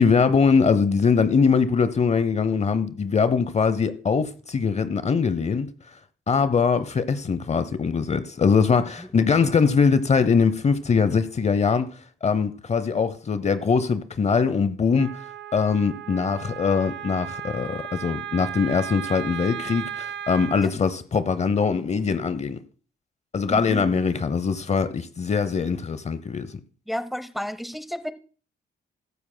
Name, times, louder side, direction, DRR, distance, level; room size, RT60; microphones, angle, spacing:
voice 1, 0.0-5.7 6.3-11.9 12.2-15.2 15.5-22.6 23.3-26.5, left 5 dB, 35° left, 0.7 m, -22 dB
voice 2, 8.7-9.1 20.6-20.7 23.5-23.9 26.9-28.1, equal, ahead, 0.9 m, -32 dB
Wind instrument woodwind instrument, 15.0-20.7, right 9 dB, 65° right, 0.6 m, -35 dB
15.0 x 12.0 x 2.2 m
cardioid pair, 90°, 20 cm